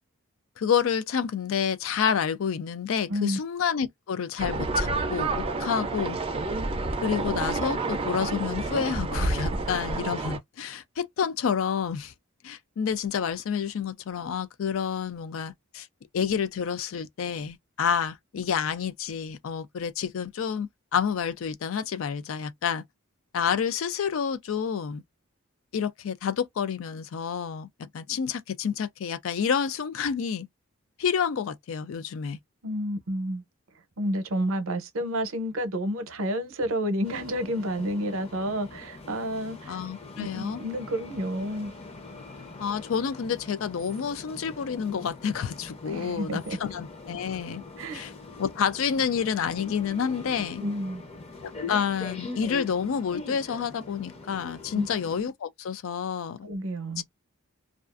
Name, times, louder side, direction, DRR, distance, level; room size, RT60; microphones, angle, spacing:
voice 1, 0.6-6.2 7.0-12.1 12.4-15.9 16.1-22.8 23.3-25.0 25.7-30.5 31.0-32.4 39.7-40.6 42.6-47.6 47.9-48.1 48.4-50.6 51.4-56.5 57.0-57.1, left 7 dB, 65° left, 0.4 m, -29 dB
voice 2, 3.1-3.4 32.6-33.4 34.0-39.8 40.2-41.7 45.9-46.6 47.8-48.0 50.6-51.0 54.7-54.9 56.4-57.0, equal, 70° right, 0.7 m, -30 dB
sound 1, 4.4-10.4, right 2 dB, 25° right, 0.4 m, -29 dB
sound 2, 37.0-55.2, left 3 dB, 30° left, 0.6 m, -42 dB
2.4 x 2.3 x 2.4 m
head